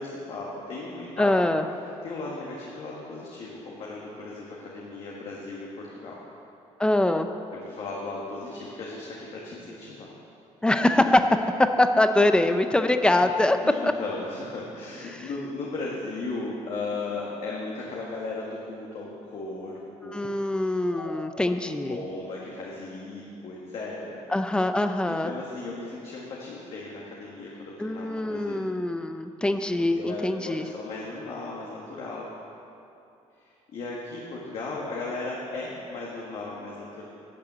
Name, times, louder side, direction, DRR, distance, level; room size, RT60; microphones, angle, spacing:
voice 1, 0.0-1.3 2.0-6.2 7.6-10.1 13.6-20.1 20.9-21.1 21.9-24.2 25.1-28.6 29.8-32.3 33.4-37.0, left 3 dB, 55° left, -4 dB, 1.7 m, -36 dB
voice 2, 1.2-1.7 6.8-7.3 10.6-13.6 13.8-13.9 15.1-15.3 20.1-22.0 24.3-25.3 27.8-30.7, left 1 dB, 10° left, 8 dB, 0.6 m, -23 dB
12.0 x 6.9 x 8.0 m, 2.7 s
cardioid pair, 140°, 12 cm